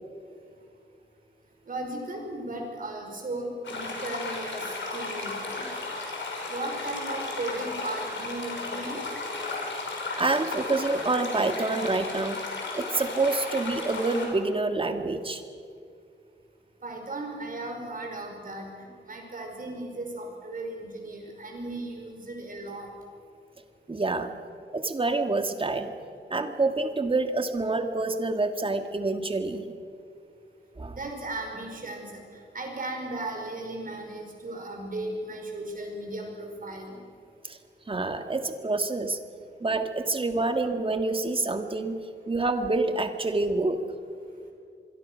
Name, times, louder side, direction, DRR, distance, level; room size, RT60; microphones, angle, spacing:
voice 1, 1.7-4.6 4.9-5.7 6.5-9.0 16.8-22.9 30.9-37.0, right 2 dB, 45° right, 2 dB, 5.3 m, -36 dB
sound 1, 3.6-14.3, left 3 dB, 80° left, 5.4 m, -34 dB
voice 2, 10.1-12.4 12.7-15.4 23.9-24.3 24.7-25.9 26.3-29.7 30.8-31.0 37.4-37.6 37.9-39.2 39.6-42.0 42.3-43.8, right 3 dB, 30° right, 7 dB, 1.8 m, -27 dB
25.0 x 22.5 x 6.3 m, 2.3 s
wide cardioid pair, 115°, 19 cm